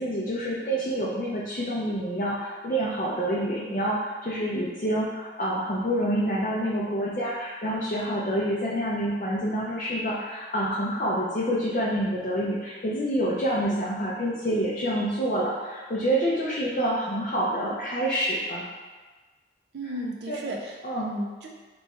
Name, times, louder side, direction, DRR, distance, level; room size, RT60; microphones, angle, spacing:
voice 1, 0.0-18.6 20.3-20.5 20.8-21.1, right 1 dB, 45° left, -6 dB, 0.4 m, -27 dB
voice 2, 19.7-21.5, right 1 dB, 75° right, 0 dB, 0.5 m, -34 dB
3.0 x 2.3 x 4.2 m, 1.3 s
head